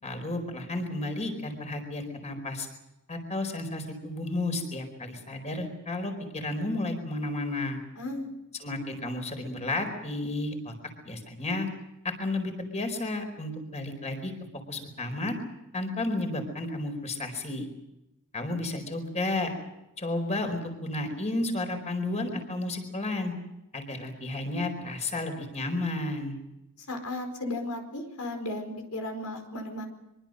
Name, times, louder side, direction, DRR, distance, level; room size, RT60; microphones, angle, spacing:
voice 1, 0.0-2.7 3.1-7.8 8.6-10.7 11.0-11.7 12.0-14.3 14.7-15.4 15.7-17.7 18.3-19.5 20.0-23.3 23.7-26.4, left 2 dB, 30° left, 6 dB, 4.6 m, -32 dB
voice 2, 8.0-8.3 26.9-29.9, left 1 dB, 85° left, 5 dB, 4.7 m, -35 dB
24.5 x 24.0 x 6.5 m, 0.91 s
head